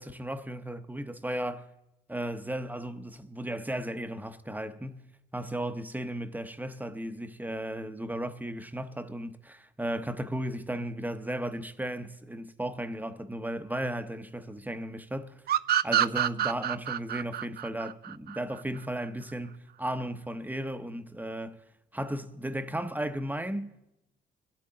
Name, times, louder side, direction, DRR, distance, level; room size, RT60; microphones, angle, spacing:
voice 1, 0.0-1.6 2.1-5.1 5.3-15.4 15.8-21.6 21.9-23.7, right 1 dB, 10° right, 0.8 m, -35 dB
sound 1, 15.5-18.8, right 11 dB, 55° right, 0.4 m, -27 dB
24.5 x 8.6 x 3.8 m
cardioid pair, 90°, 20 cm